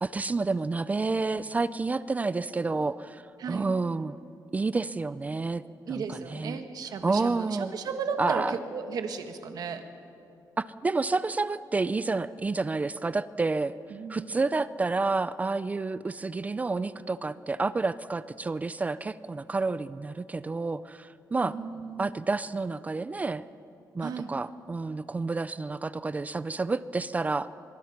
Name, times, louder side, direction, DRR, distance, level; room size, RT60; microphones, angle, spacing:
voice 1, 0.0-3.2 3.5-4.2 4.5-5.6 5.9-6.6 7.0-7.7 8.2-8.5 10.6-13.7 14.1-21.5 22.0-23.4 23.9-27.5, right 3 dB, 20° right, 15 dB, 0.4 m, -29 dB
voice 2, 5.9-9.8 13.9-14.3 21.4-22.1 24.0-24.3, right 5 dB, 65° right, 7 dB, 1.7 m, -34 dB
24.0 x 22.5 x 5.9 m, 2.6 s
wide cardioid pair, 155°, 7 cm